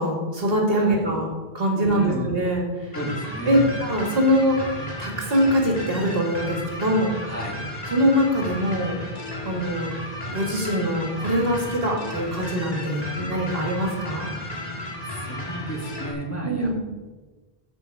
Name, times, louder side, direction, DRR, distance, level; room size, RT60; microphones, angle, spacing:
voice 1, 0.0-3.0 3.4-4.6 5.0-7.2 7.9-8.9 9.4-9.9 10.3-14.3 16.4-16.9, equal, 65° right, -1 dB, 2.3 m, -23 dB
voice 2, 1.8-2.4 2.9-3.7 7.2-7.6 14.9-16.9, right 1 dB, 15° left, -1 dB, 1.7 m, -33 dB
sound 1, 2.9-16.1, left 1 dB, 40° left, 1.7 m, -34 dB
13.5 x 5.6 x 4.8 m, 1.3 s
omnidirectional pair, 1.0 m